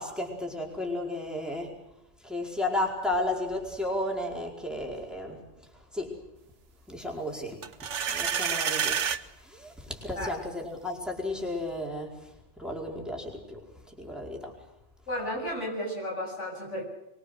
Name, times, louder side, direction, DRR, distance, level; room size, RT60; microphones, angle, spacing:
voice 1, 0.0-1.8 2.2-5.4 5.9-6.2 6.9-9.0 9.2-12.3 12.6-13.6 13.9-14.5, left 1 dB, ahead, -1 dB, 4.8 m, -33 dB
sound 1, 7.6-9.2, right 7 dB, 80° right, 1.3 m, -28 dB
voice 2, 15.1-16.8, equal, 90° left, 0 dB, 8.3 m, -33 dB
24.0 x 23.5 x 6.5 m, 0.91 s
omnidirectional pair, 1.2 m